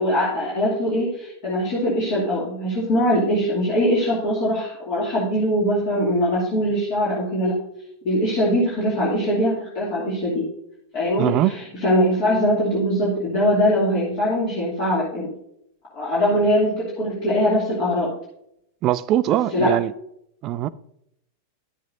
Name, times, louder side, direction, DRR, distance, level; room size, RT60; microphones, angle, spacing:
voice 1, 0.0-7.5 8.0-10.4 10.9-15.3 15.9-18.1 19.5-19.7, equal, 40° left, 2.7 m, -22 dB
voice 2, 11.2-11.6 18.8-19.9 20.4-20.7, right 13 dB, 35° right, 0.3 m, -21 dB
11.0 x 7.5 x 2.7 m
figure-of-eight pair, 90°, 0 cm